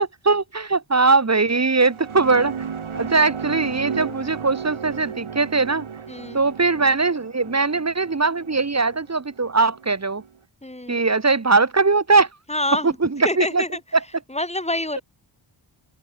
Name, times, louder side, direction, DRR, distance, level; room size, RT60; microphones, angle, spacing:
voice 1, 0.0-2.5 2.9-5.8 6.3-10.2 10.9-12.3 12.8-13.6, right 3 dB, 30° right, 1.7 m, -20 dB
sound 1, 1.6-10.3, right 6 dB, 75° right, 5.0 m, -34 dB
voice 2, 6.1-6.4 10.6-11.0 12.5-13.0 13.2-13.8 14.3-15.0, left 1 dB, 15° left, 1.9 m, -27 dB
open air
wide cardioid pair, 75°, 49 cm